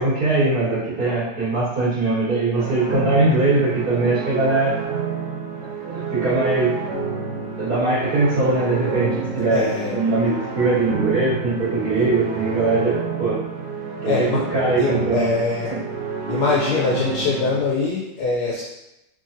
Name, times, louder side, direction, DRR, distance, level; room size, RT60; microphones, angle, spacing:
voice 1, 0.0-4.7 5.8-6.7 7.6-13.4 14.0-15.2, right 2 dB, 50° right, -10 dB, 1.9 m, -21 dB
sound 1, 2.5-17.6, right 5 dB, 70° right, 1.1 m, -29 dB
voice 2, 9.5-10.0 14.0-14.4 14.8-15.8 16.3-18.6, left 4 dB, 70° left, -5 dB, 0.9 m, -23 dB
3.8 x 3.1 x 2.6 m, 0.92 s
omnidirectional pair, 2.1 m